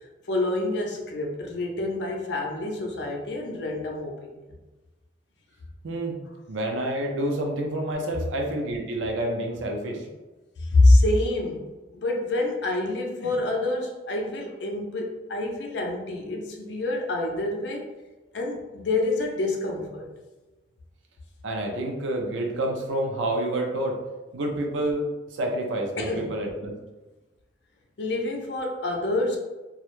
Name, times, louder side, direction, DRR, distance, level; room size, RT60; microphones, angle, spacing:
voice 1, 0.3-4.5 10.7-11.7 11.9-17.9 18.3-20.1 26.0-26.4 28.0-29.4, left 2 dB, 65° left, 1 dB, 0.5 m, -26 dB
voice 2, 5.8-6.2 6.5-10.0 21.4-24.0 24.3-26.7, right 1 dB, 85° right, 2 dB, 0.5 m, -28 dB
2.3 x 2.0 x 3.0 m, 1.1 s
head